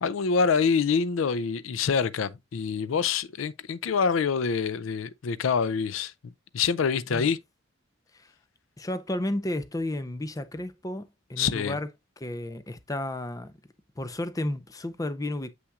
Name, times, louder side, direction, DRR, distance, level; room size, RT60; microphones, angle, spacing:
voice 1, 0.0-7.4 11.4-11.8, left 6 dB, 85° left, 0.4 m, -26 dB
voice 2, 8.8-11.9 12.2-13.5 14.0-15.5, left 1 dB, 20° left, 0.6 m, -32 dB
7.8 x 5.7 x 2.4 m
head